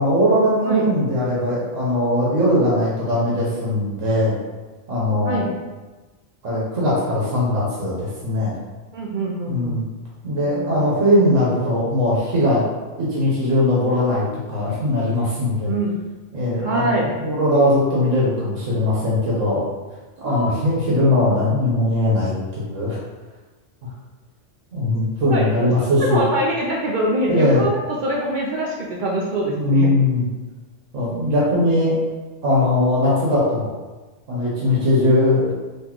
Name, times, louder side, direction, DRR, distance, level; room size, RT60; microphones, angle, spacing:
voice 1, 0.0-4.4 4.9-5.4 6.4-8.6 9.5-9.8 10.2-12.6 13.0-15.7 16.3-19.6 20.2-23.0 24.7-26.3 27.3-27.6 29.5-30.2 30.9-32.0 32.4-33.7 34.3-35.5, left 1 dB, 85° right, -6 dB, 1.3 m, -20 dB
voice 2, 8.9-9.8 10.4-10.9 15.6-15.9 16.6-17.2 20.2-20.6 25.3-25.7 26.0-29.9, right 1 dB, 65° right, -3 dB, 0.5 m, -24 dB
4.0 x 3.0 x 3.0 m, 1.2 s
omnidirectional pair, 1.3 m